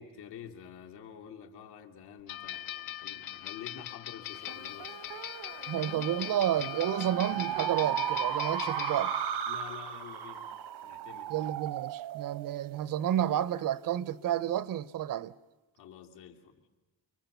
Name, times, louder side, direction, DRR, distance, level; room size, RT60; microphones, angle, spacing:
voice 1, 0.0-5.0 5.5-5.7 9.4-10.5 10.8-11.4 15.7-16.7, left 8 dB, 80° left, 3.3 m, -48 dB
sound 1, 2.3-9.4, left 12 dB, 60° left, 0.8 m, -41 dB
sound 2, 4.5-13.3, right 9 dB, 75° right, 1.3 m, -36 dB
voice 2, 5.7-9.1 11.3-15.3, right 11 dB, 55° right, 0.9 m, -30 dB
30.0 x 23.5 x 6.9 m
cardioid pair, 175°, 39 cm